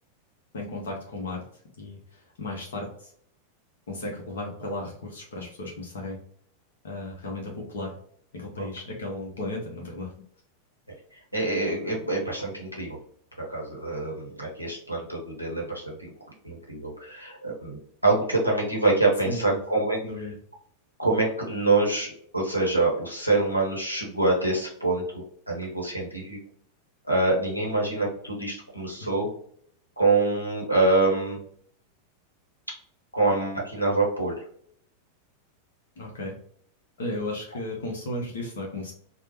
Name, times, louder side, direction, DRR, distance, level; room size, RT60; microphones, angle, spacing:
voice 1, 0.5-1.4 1.8-3.1 3.9-6.2 6.8-7.9 8.3-10.1 19.2-19.6 20.0-20.3 36.0-36.4 37.0-38.9, left 2 dB, 65° left, -1 dB, 0.7 m, -35 dB
voice 2, 11.3-13.0 13.4-16.1 16.4-20.0 21.0-26.4 27.1-29.3 30.0-31.4 33.1-34.4, right 2 dB, 90° left, -2 dB, 0.9 m, -25 dB
3.2 x 2.0 x 2.9 m, 0.63 s
figure-of-eight pair, 90°, 0 cm